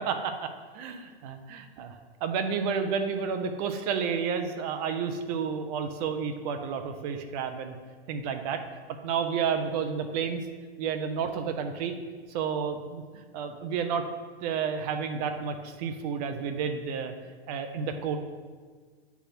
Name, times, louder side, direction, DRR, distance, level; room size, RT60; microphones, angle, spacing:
voice 1, 0.0-7.7 8.1-8.6 9.0-10.4 10.8-11.9 12.3-14.1 14.4-17.1 17.5-18.2, right 6 dB, 40° right, 6 dB, 0.7 m, -31 dB
8.4 x 3.6 x 5.9 m, 1.5 s
hypercardioid pair, 130°, 32 cm